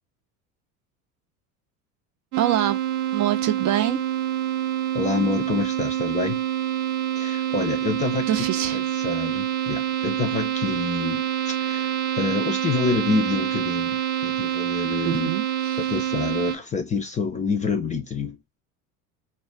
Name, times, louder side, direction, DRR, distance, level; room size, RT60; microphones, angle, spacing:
sound 1, 2.3-16.6, right 11 dB, 90° right, 0.6 m, -26 dB
voice 1, 2.4-2.8 3.1-4.0 8.3-8.8 15.0-16.0, right 12 dB, 40° right, 0.5 m, -25 dB
voice 2, 4.9-6.4 7.1-8.3 8.7-15.3 15.8-18.4, left 4 dB, 20° left, 0.4 m, -27 dB
2.3 x 2.2 x 3.6 m
hypercardioid pair, 85°, 44 cm